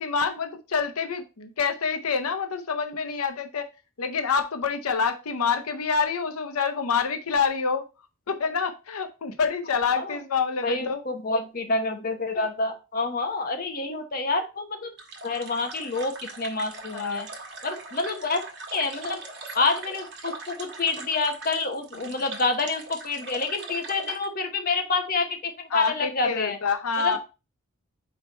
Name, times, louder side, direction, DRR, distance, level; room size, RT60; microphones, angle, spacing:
voice 1, 0.0-3.7 4.0-7.9 8.3-11.0 12.3-12.4 16.9-17.3 22.0-22.2 25.7-27.2, left 5 dB, 85° left, 8 dB, 0.7 m, -27 dB
voice 2, 10.6-14.9 15.2-17.3 17.6-18.4 18.7-19.2 19.5-26.6 27.0-27.2, left 3 dB, 40° left, 5 dB, 1.0 m, -28 dB
sound 1, 15.0-24.3, right 3 dB, 50° right, 1.5 m, -41 dB
4.9 x 4.4 x 5.3 m, 0.30 s
head